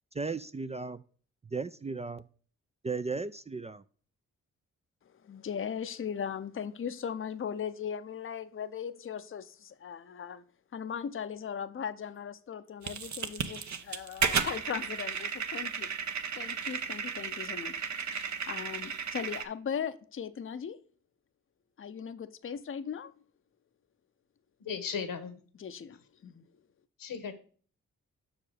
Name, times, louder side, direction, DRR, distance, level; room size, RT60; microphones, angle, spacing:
voice 1, 0.1-1.0 1.5-2.2 2.8-3.8, right 4 dB, 20° right, 0.4 m, -35 dB
voice 2, 5.2-10.4 10.7-15.9 16.4-17.8 18.5-20.8 21.8-23.1 25.6-26.4, left 7 dB, 35° left, 0.7 m, -38 dB
sound 1, 12.8-19.4, right 6 dB, 55° right, 0.9 m, -34 dB
voice 3, 24.6-25.4 27.0-27.3, left 6 dB, 70° left, 1.2 m, -36 dB
6.1 x 4.9 x 4.9 m
supercardioid pair, 45°, 35 cm